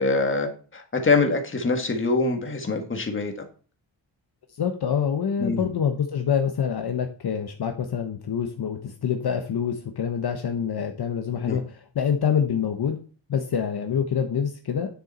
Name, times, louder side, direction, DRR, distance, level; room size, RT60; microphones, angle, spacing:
voice 1, 0.0-3.5 5.4-5.6 11.5-11.6, left 3 dB, 25° left, 4 dB, 1.9 m, -24 dB
voice 2, 4.6-13.0 13.3-15.0, left 7 dB, 60° left, 5 dB, 1.2 m, -26 dB
9.9 x 6.6 x 4.3 m, 0.38 s
wide cardioid pair, 170°, 44 cm